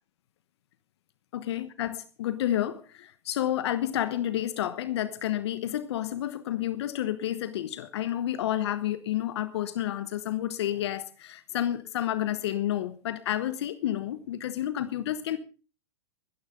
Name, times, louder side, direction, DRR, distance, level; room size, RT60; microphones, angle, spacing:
voice 1, 1.3-15.4, left 12 dB, 65° left, 1.1 m, -30 dB
19.5 x 13.5 x 3.8 m
hypercardioid pair, 125°, 15 cm